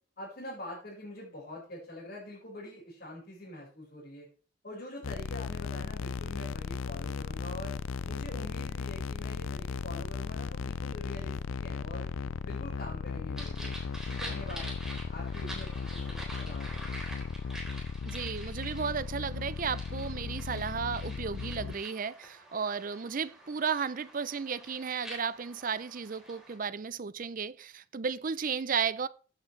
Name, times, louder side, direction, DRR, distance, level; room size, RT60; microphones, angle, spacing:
voice 1, 0.2-4.3 4.6-7.8 8.0-12.1 12.4-13.8 14.0-14.7 15.1-17.0, left 1 dB, 50° left, 5.2 m, -45 dB
sound 1, 5.0-21.8, left 5 dB, 90° left, 0.5 m, -36 dB
sound 2, 13.4-26.6, right 1 dB, 5° right, 4.0 m, -46 dB
voice 2, 18.0-29.1, right 6 dB, 40° right, 0.5 m, -34 dB
15.0 x 8.8 x 3.3 m
head